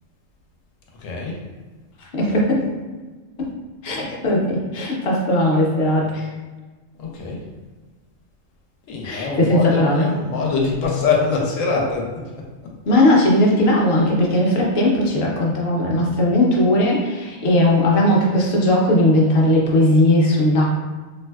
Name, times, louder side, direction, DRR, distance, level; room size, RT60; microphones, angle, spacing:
voice 1, 1.0-1.4 7.0-7.4 8.9-12.2 12.6-13.0 13.9-14.2, left 4 dB, 85° left, -1 dB, 1.0 m, -24 dB
voice 2, 2.0-2.7 3.4-3.5 3.8-6.3 9.0-10.1 12.9-20.7, left 1 dB, 60° left, -2 dB, 0.7 m, -18 dB
3.3 x 2.6 x 2.2 m, 1.3 s
omnidirectional pair, 1.4 m